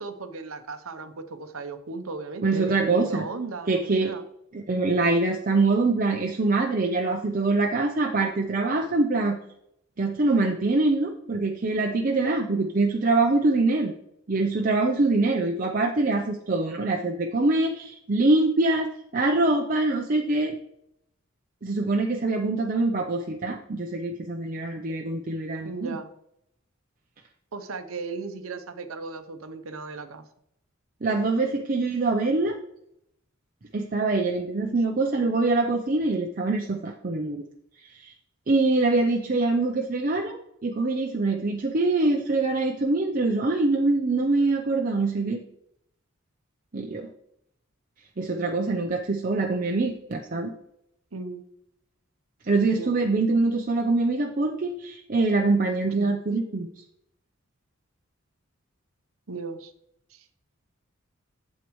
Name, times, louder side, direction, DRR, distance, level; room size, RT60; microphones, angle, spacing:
voice 1, 0.0-4.2 25.6-26.1 27.5-30.2 51.1-51.4 52.7-53.0 56.0-56.1 59.3-59.7 60.1-60.2, right 3 dB, 80° right, 9 dB, 0.8 m, -36 dB
voice 2, 2.4-3.2 3.7-4.1 4.5-9.4 10.0-13.9 14.3-20.6 21.6-26.0 31.0-32.6 33.7-37.4 38.0-38.1 38.5-45.4 46.7-47.1 48.2-50.5 52.5-56.7, right 3 dB, 40° right, 2 dB, 0.6 m, -24 dB
8.4 x 7.5 x 3.1 m, 0.76 s
head